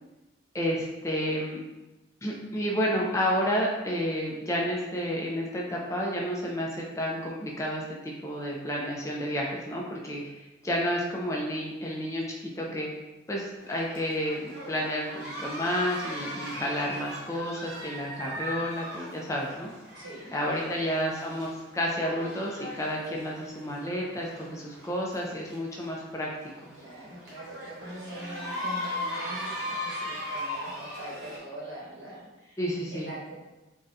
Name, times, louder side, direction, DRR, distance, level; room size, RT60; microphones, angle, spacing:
voice 1, 0.5-1.6 2.2-12.9 13.3-19.7 20.3-26.3 32.6-33.1, equal, 15° left, -2 dB, 0.3 m, -31 dB
sound 1, 13.6-31.4, left 1 dB, 60° right, 1.0 m, -39 dB
voice 2, 19.9-20.7 26.7-32.6 32.9-33.4, right 1 dB, 80° right, -6 dB, 1.2 m, -42 dB
3.6 x 2.1 x 2.6 m, 1.1 s
head